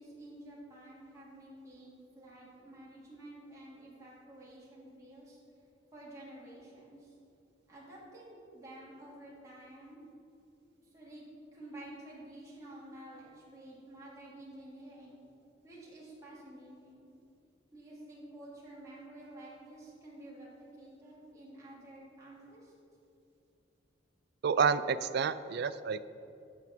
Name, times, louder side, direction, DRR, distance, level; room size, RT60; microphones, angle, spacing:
voice 1, 0.0-5.4 5.9-7.2 7.7-10.0 10.8-11.2 11.5-15.2 15.6-17.1 17.7-22.7, right 1 dB, 20° right, -7 dB, 2.3 m, -51 dB
voice 2, 24.4-26.1, right 6 dB, 60° right, 13 dB, 0.3 m, -29 dB
9.2 x 6.2 x 5.8 m, 2.6 s
head